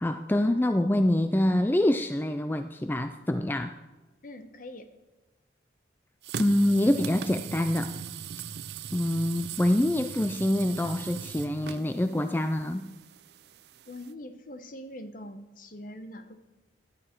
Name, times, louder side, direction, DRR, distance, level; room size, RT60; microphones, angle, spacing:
voice 1, 0.0-3.8 6.4-8.0 8.9-12.9, left 1 dB, 10° left, 9 dB, 0.4 m, -25 dB
voice 2, 4.2-4.9 13.9-16.4, left 1 dB, 45° left, 9 dB, 1.0 m, -43 dB
sound 1, 6.2-14.1, right 7 dB, 60° right, 0.4 m, -40 dB
15.5 x 11.0 x 4.5 m, 1.1 s
head